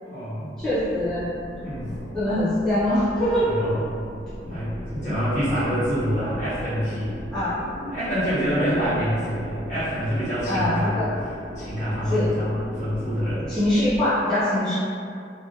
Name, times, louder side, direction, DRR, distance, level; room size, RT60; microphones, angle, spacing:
voice 1, 0.0-0.5 1.4-2.0 3.4-3.8 4.4-7.2 7.9-11.0 11.5-13.5, equal, 45° left, -14 dB, 1.2 m, -26 dB
sound 1, 0.6-14.0, equal, 25° left, 0.9 m, -38 dB
voice 2, 0.6-1.3 2.1-3.5 7.3-7.6 10.5-11.1 12.0-12.3 13.5-14.8, left 1 dB, 5° left, -15 dB, 0.6 m, -23 dB
2.5 x 2.2 x 2.6 m, 2.4 s
head